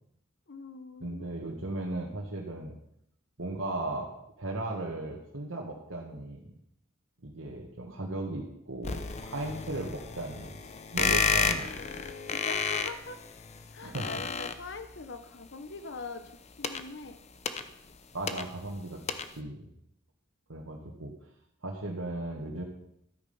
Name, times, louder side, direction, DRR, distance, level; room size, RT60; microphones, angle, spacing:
voice 1, 0.5-1.3 12.3-13.2 13.7-17.2, left 4 dB, 60° left, 9 dB, 0.9 m, -42 dB
voice 2, 1.0-2.7 3.4-4.1 4.4-6.5 7.2-10.6 10.9-11.7 13.8-14.1 18.1-19.0 19.4-19.7 20.5-21.1 21.6-22.6, right 2 dB, 85° right, -2 dB, 1.8 m, -36 dB
sound 1, 8.8-15.0 16.2-18.8 19.1-19.4, left 5 dB, 35° left, 0.7 m, -32 dB
13.0 x 8.7 x 5.6 m, 0.76 s
head